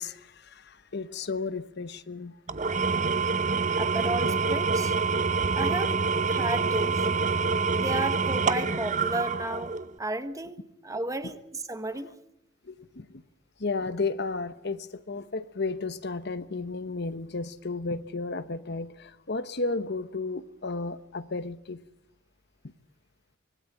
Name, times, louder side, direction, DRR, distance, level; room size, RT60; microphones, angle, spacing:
voice 1, 0.0-2.3 12.6-13.1 13.6-21.8, left 3 dB, 60° left, 13 dB, 1.0 m, -33 dB
Engine / Tools, 2.5-10.0, right 4 dB, 40° right, 0.9 m, -26 dB
voice 2, 3.8-4.9 5.6-6.0 6.3-7.1 7.8-10.6 10.8-12.1, right 1 dB, 15° right, 10 dB, 1.3 m, -33 dB
25.0 x 19.0 x 8.7 m, 0.79 s
head